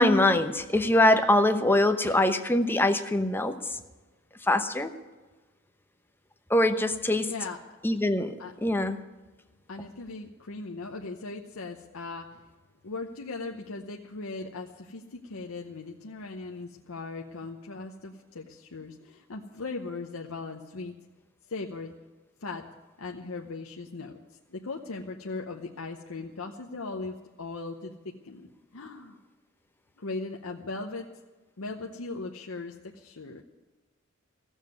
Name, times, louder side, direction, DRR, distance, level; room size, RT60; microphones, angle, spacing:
voice 1, 0.0-3.6 4.5-4.9 6.5-7.3 7.8-8.4 8.6-9.0, left 1 dB, 10° left, 8 dB, 0.8 m, -23 dB
voice 2, 9.7-12.4 12.8-20.9 21.5-21.9 22.4-22.6 23.0-24.2 24.5-29.2 30.0-31.0 31.6-33.4, left 3 dB, 70° left, 2 dB, 0.9 m, -38 dB
15.0 x 7.3 x 9.4 m, 1.2 s
head